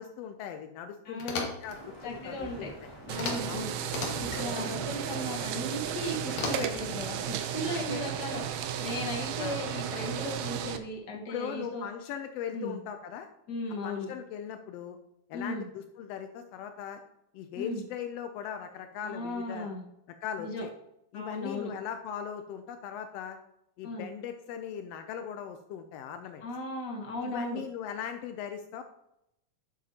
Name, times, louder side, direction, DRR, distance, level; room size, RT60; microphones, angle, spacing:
voice 1, 0.0-1.3 1.6-2.9 3.5-3.7 4.4-4.7 7.7-8.0 9.4-9.6 11.3-13.3 13.8-15.0 15.3-17.0 17.3-19.7 20.1-20.7 21.1-23.4 23.8-26.4 27.2-28.8, left 8 dB, 85° left, 7 dB, 1.4 m, -39 dB
voice 2, 1.1-1.5 2.0-2.7 3.1-3.7 4.2-11.8 12.5-12.8 13.5-14.1 15.3-15.7 17.6-17.8 19.0-19.8 20.4-20.6 21.1-21.7 23.8-24.1 26.4-27.6, left 1 dB, 45° left, 0 dB, 1.6 m, -36 dB
sound 1, 1.2-1.8 3.1-3.6 3.8-4.5 6.3-6.9, left 4 dB, 65° left, 2.4 m, -35 dB
sound 2, 1.6-7.3, right 1 dB, 10° left, 1.9 m, -46 dB
sound 3, 3.1-10.8, right 9 dB, 80° right, 1.9 m, -34 dB
11.0 x 7.4 x 2.8 m, 0.83 s
omnidirectional pair, 3.5 m